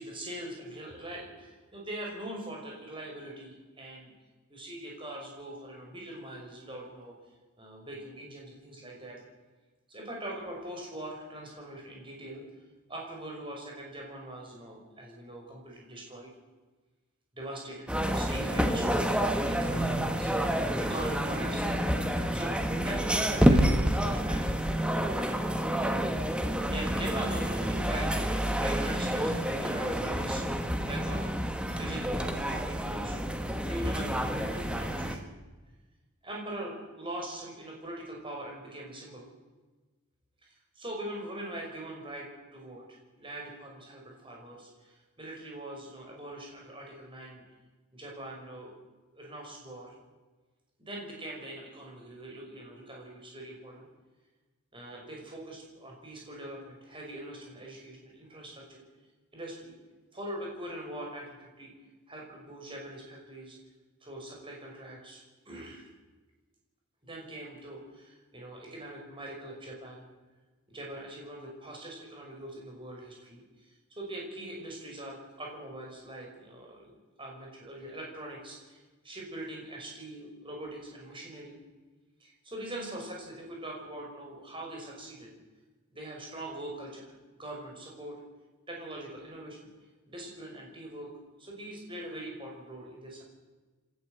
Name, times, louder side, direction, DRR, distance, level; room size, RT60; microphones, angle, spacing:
voice 1, 0.0-4.1 4.5-7.1 7.6-9.2 9.9-12.4 12.9-16.3 17.3-21.6 22.3-25.4 25.7-28.2 28.5-31.4 31.7-35.3 36.2-39.2 40.4-47.4 47.9-48.7 49.1-49.9 50.8-53.9 54.7-58.8 59.3-59.7 60.1-61.7 62.1-63.6 64.0-65.9 67.0-70.0 70.7-81.6 82.2-85.3 85.9-88.2 88.7-89.6 90.1-91.1 91.4-93.2, right 1 dB, 25° right, -1 dB, 5.8 m, -42 dB
sound 1, 17.9-35.2, equal, 5° right, 1.3 m, -28 dB
27.0 x 13.0 x 8.0 m, 1.3 s
head